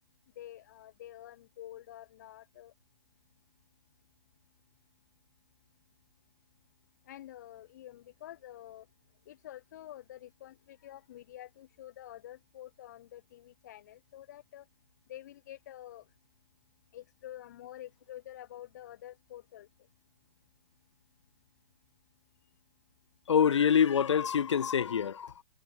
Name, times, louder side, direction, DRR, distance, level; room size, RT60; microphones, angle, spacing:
voice 1, 0.3-2.7 7.0-8.9 9.2-14.7 15.1-16.1 16.9-19.7, left 13 dB, 40° left, 3.0 m, -48 dB
voice 2, 23.3-25.4, left 7 dB, 80° left, 2.0 m, -26 dB
hypercardioid pair, 175°, 15 cm